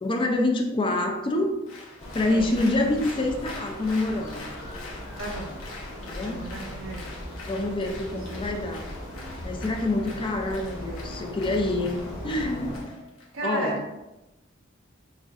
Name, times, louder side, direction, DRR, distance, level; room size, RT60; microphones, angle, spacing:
voice 1, 0.0-1.5 2.1-4.5 6.1-6.4 7.4-8.9 9.4-12.0 12.2-12.7 13.4-13.8, left 2 dB, 25° left, 3 dB, 0.4 m, -26 dB
Applause, 1.7-13.3, left 2 dB, 80° left, 1.0 m, -44 dB
sound 1, 2.0-12.8, equal, 50° left, 1.3 m, -38 dB
voice 2, 2.2-2.6 5.2-5.5 6.2-7.1 13.3-13.8, right 2 dB, 75° right, -1 dB, 1.1 m, -34 dB
6.3 x 2.4 x 2.4 m, 0.97 s
head